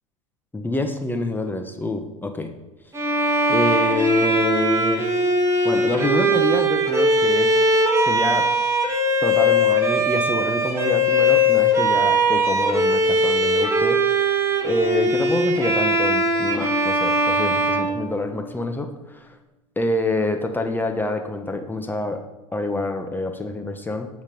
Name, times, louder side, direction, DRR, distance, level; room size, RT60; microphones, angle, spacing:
voice 1, 0.5-2.5 3.5-5.1 5.6-7.5 8.0-8.5 9.2-14.0 14.3-14.4 14.6-19.4 19.8-22.2 22.5-24.1, left 2 dB, 10° left, 5 dB, 1.2 m, -26 dB
Bowed string instrument, 2.9-18.7, equal, 15° right, 2.7 m, -20 dB
14.0 x 5.4 x 5.4 m, 1.0 s
hypercardioid pair, 85°, 17 cm